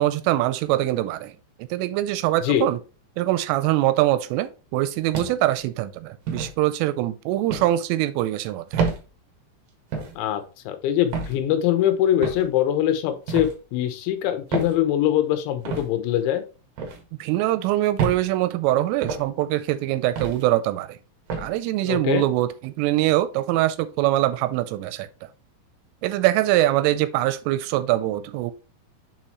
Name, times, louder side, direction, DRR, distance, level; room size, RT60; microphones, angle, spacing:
voice 1, 0.0-1.4 1.7-2.8 3.2-8.8 17.2-21.0 21.4-25.1 26.0-28.5, right 15 dB, 85° right, 3.1 m, -23 dB
sound 1, 5.1-5.6 6.3-6.5 7.5-7.7 8.7-9.0 9.9-10.2 11.1-11.4 12.2-12.5 13.3-13.5 14.5-14.8 15.6-15.9 16.8-17.0 18.0-18.2 19.0-19.3 20.2-20.4 21.3-21.5, right 5 dB, 60° right, 2.5 m, -28 dB
voice 2, 10.2-16.4 21.8-22.3, left 11 dB, 75° left, 3.3 m, -23 dB
7.1 x 5.8 x 3.0 m
omnidirectional pair, 5.8 m